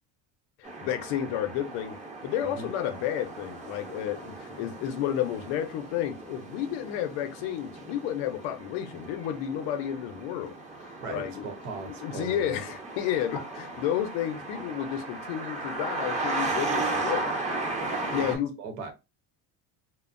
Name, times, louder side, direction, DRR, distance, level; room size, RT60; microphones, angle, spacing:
voice 1, 0.6-2.0 2.2-11.5 11.8-17.3 18.1-18.5, left 10 dB, 80° left, 0.7 m, -31 dB
sound 1, 0.6-18.4, right 2 dB, 15° right, 0.8 m, -36 dB
voice 2, 11.0-12.6 18.2-18.9, right 4 dB, 85° right, 1.0 m, -38 dB
2.8 x 2.0 x 2.5 m
cardioid pair, 115°, 42 cm